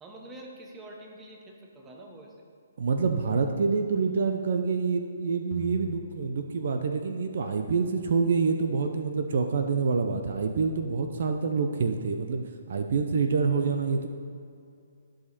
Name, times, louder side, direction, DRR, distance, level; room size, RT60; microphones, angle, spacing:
voice 1, 0.0-2.4, right 1 dB, 10° right, 0 dB, 1.0 m, -46 dB
voice 2, 2.8-14.1, right 5 dB, 60° right, 6 dB, 0.6 m, -27 dB
sound 1, 5.5-7.3, left 4 dB, 40° right, 1.0 m, -44 dB
13.5 x 5.1 x 4.2 m, 2.4 s
hypercardioid pair, 155°, 0 cm